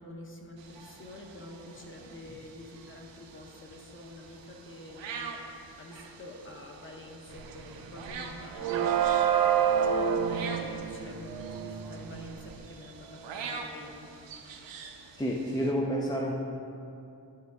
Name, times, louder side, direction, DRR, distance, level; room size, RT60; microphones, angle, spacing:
voice 1, 0.0-8.9 10.3-14.1, left 1 dB, 30° left, 1 dB, 0.9 m, -47 dB
sound 1, 0.6-15.7, right 5 dB, 85° right, 0.7 m, -45 dB
sound 2, 7.4-7.6 7.9-12.5, right 8 dB, 55° right, 0.5 m, -28 dB
voice 2, 15.1-16.3, equal, 10° left, -1 dB, 0.3 m, -29 dB
9.4 x 4.7 x 3.5 m, 2.6 s
wide cardioid pair, 130°, 43 cm